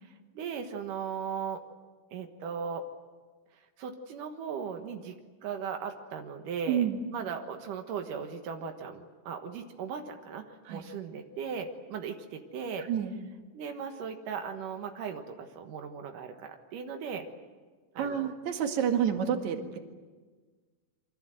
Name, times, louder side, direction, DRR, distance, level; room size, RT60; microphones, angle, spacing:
voice 1, 0.0-1.6 2.1-2.8 3.8-5.2 5.4-12.9 13.5-17.3 17.9-18.3 19.0-19.1, right 6 dB, 85° right, 5 dB, 3.1 m, -38 dB
voice 2, 6.7-7.0 10.7-10.8 12.9-13.1 18.0-19.8, right 8 dB, 65° right, 5 dB, 3.2 m, -29 dB
28.5 x 24.5 x 7.9 m, 1.4 s
omnidirectional pair, 3.6 m